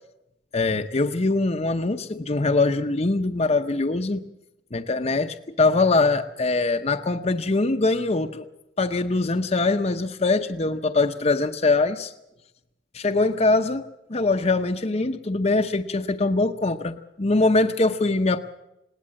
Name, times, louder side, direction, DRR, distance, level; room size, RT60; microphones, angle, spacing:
voice 1, 0.5-4.2 4.7-8.5 8.8-12.1 12.9-13.8 14.1-18.4, left 3 dB, 35° left, 5 dB, 0.8 m, -22 dB
20.5 x 18.0 x 7.7 m, 0.89 s
head